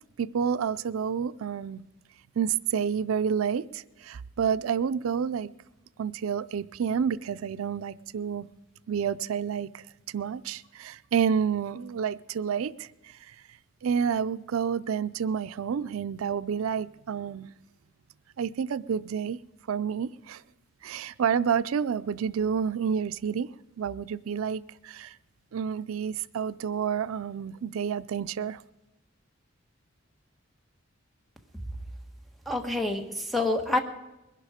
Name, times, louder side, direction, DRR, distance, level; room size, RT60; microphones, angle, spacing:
voice 1, 0.2-1.8 2.4-5.5 6.0-8.5 8.9-13.4 13.8-17.5 18.4-19.4 19.7-20.4 20.8-23.5 23.8-25.2 25.5-28.6, right 7 dB, 85° right, 15 dB, 0.4 m, -29 dB
voice 2, 32.5-33.8, left 2 dB, ahead, 5 dB, 1.3 m, -27 dB
21.0 x 11.5 x 5.0 m, 1.0 s
head